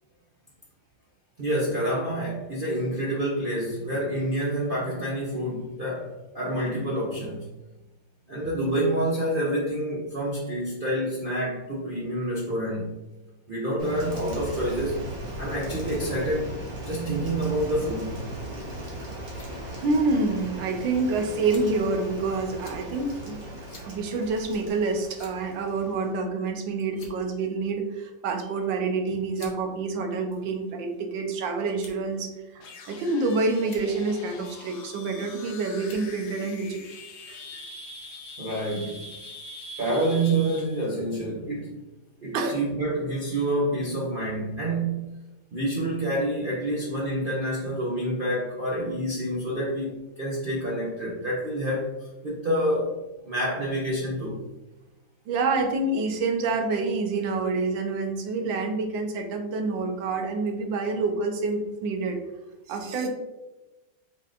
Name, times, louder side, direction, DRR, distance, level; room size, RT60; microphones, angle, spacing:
voice 1, 1.4-7.5 8.3-13.0 13.5-15.0 15.4-16.5 16.8-18.3 38.4-39.0 39.8-41.7 42.2-45.2 45.5-52.9 53.2-54.4, right 1 dB, 60° right, -5 dB, 0.5 m, -28 dB
Rain, 13.8-26.2, right 1 dB, 35° right, 1.1 m, -38 dB
sound 1, 19.3-19.5 20.3-20.4 21.5-21.9 22.6-22.8 23.7-23.9 24.3-24.4 25.1-25.5 26.4-26.6 26.9-27.4 28.5-28.6 29.3-29.6 30.4-31.0 31.8-32.1 32.9-33.2 33.6-33.9 35.1-35.4 35.8-36.1, left 3 dB, 50° left, 1.0 m, -49 dB
voice 2, 19.8-36.8 37.3-37.6 42.3-42.6 55.3-62.2 62.7-63.1, right 3 dB, 85° right, 4 dB, 1.5 m, -27 dB
sound 2, 32.6-40.9, left 2 dB, 75° left, 1.5 m, -43 dB
5.5 x 3.7 x 2.5 m, 1.1 s
omnidirectional pair, 2.0 m